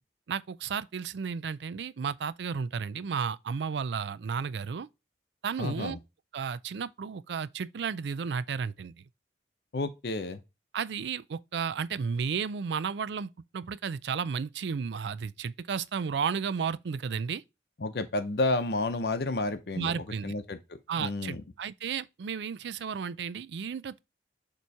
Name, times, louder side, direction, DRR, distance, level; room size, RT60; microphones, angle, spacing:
voice 1, 0.3-4.9 5.4-6.0 6.3-8.9 10.7-17.4 19.7-20.3 20.9-24.0, right 6 dB, 75° right, 0.4 m, -33 dB
voice 2, 5.6-6.0 9.7-10.4 17.8-19.9 20.2-20.6 21.0-21.4, left 2 dB, 65° left, 0.7 m, -30 dB
6.9 x 3.0 x 4.6 m
head